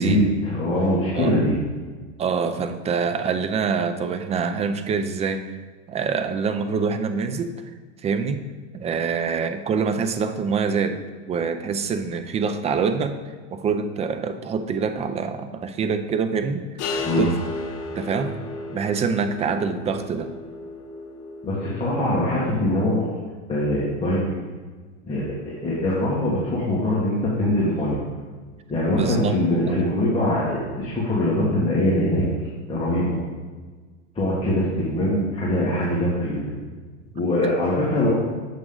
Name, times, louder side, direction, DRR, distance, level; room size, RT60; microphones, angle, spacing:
voice 1, 0.0-1.5 17.0-17.3 21.4-24.4 25.1-28.0 28.7-32.2 32.7-33.2 34.1-36.4 37.1-38.1, left 1 dB, 15° left, -7 dB, 1.8 m, -23 dB
voice 2, 2.2-5.4 5.9-7.5 8.0-8.4 8.7-11.0 11.3-13.2 13.5-16.6 17.2-17.4 17.9-18.5 18.7-20.3 28.9-29.4 29.7-29.9, right 5 dB, 20° right, 9 dB, 0.4 m, -25 dB
sound 1, 16.8-22.6, left 3 dB, 45° left, 1.2 m, -34 dB
7.4 x 6.2 x 3.8 m, 1.4 s
hypercardioid pair, 115°, 35 cm